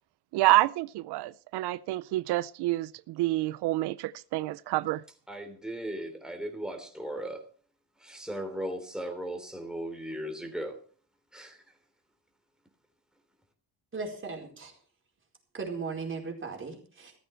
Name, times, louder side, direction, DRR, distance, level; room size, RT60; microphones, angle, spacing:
voice 1, 0.3-5.0, right 17 dB, 90° right, 0.6 m, -28 dB
voice 2, 5.3-7.4 8.0-10.8 11.3-11.6, right 1 dB, ahead, 3.4 m, -37 dB
voice 3, 13.9-14.7 15.5-17.1, right 4 dB, 30° right, 4.6 m, -37 dB
14.5 x 14.0 x 4.5 m
cardioid pair, 130°, 39 cm